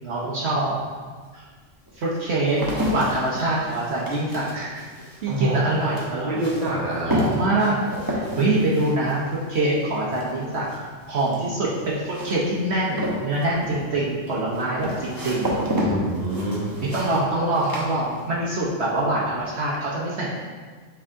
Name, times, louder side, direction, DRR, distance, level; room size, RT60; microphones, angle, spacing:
voice 1, 0.0-0.8 1.3-1.4 1.9-2.6 2.9-4.8 5.2-6.4 7.1-9.2 9.5-15.8 16.8-20.3, right 2 dB, 65° right, -5 dB, 1.1 m, -25 dB
sound 1, 1.4-18.6 18.9-19.4, equal, 20° right, 0.9 m, -31 dB
voice 2, 5.3-5.6 6.2-7.2 15.8-16.8, right 1 dB, 35° right, -5 dB, 1.2 m, -25 dB
7.6 x 3.4 x 3.6 m, 1.5 s
omnidirectional pair, 1.3 m